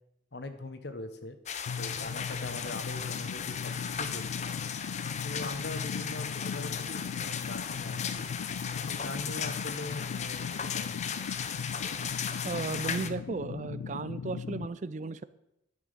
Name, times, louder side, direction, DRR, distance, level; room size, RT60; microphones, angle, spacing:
voice 1, 0.3-1.4 1.8-4.5 5.2-8.3 8.9-11.1, left 2 dB, 60° left, 9 dB, 1.2 m, -41 dB
sound 1, 1.5-13.1, left 7 dB, 35° left, 0.6 m, -36 dB
sound 2, 1.7-14.7, left 6 dB, 80° left, 0.3 m, -38 dB
voice 2, 12.4-15.2, right 4 dB, 40° right, 16 dB, 0.4 m, -35 dB
11.0 x 6.1 x 6.7 m, 0.87 s
head